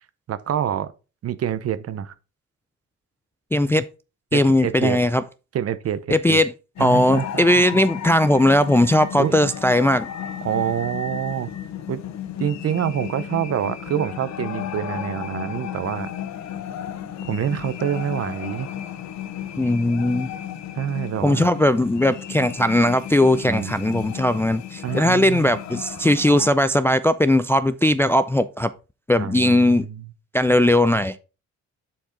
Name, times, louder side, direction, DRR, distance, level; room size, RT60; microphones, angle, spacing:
voice 1, 0.3-0.9 1.2-2.1 4.3-5.0 5.5-6.4 6.8-7.8 9.2-9.3 10.4-11.5 11.9-12.0 12.4-16.1 17.2-18.7 20.8-21.5 23.4-24.0 24.8-25.5 29.2-30.1, right 10 dB, 55° right, 0.7 m, -26 dB
voice 2, 3.5-3.8 4.3-5.2 6.1-6.5 6.8-10.1 19.6-20.3 21.2-28.7 29.1-29.9 30.3-31.2, left 1 dB, 10° left, 0.3 m, -18 dB
sound 1, 6.8-26.5, left 10 dB, 65° left, 0.8 m, -34 dB
7.2 x 4.6 x 3.9 m
cardioid pair, 90°, 30 cm